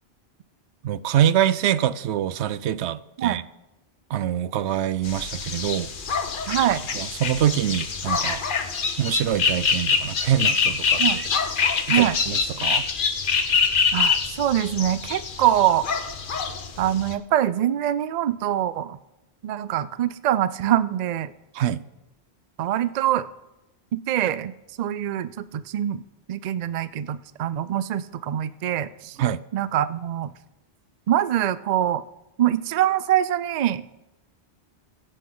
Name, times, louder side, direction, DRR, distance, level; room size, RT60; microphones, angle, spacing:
voice 1, 0.8-3.4 4.1-5.9 6.9-8.4 9.0-11.3 11.9-12.9 21.5-21.8 29.2-29.4, right 10 dB, 90° right, 0.9 m, -25 dB
sound 1, 5.0-17.1, left 5 dB, 55° left, 1.0 m, -25 dB
voice 2, 6.5-6.8 11.0-11.2 11.9-12.2 13.9-15.9 16.8-19.0 19.4-21.3 22.6-23.3 23.9-26.0 26.3-29.2 29.5-30.3 31.1-32.0 32.4-33.8, right 11 dB, 55° right, 0.5 m, -24 dB
22.0 x 7.8 x 3.8 m
omnidirectional pair, 1.1 m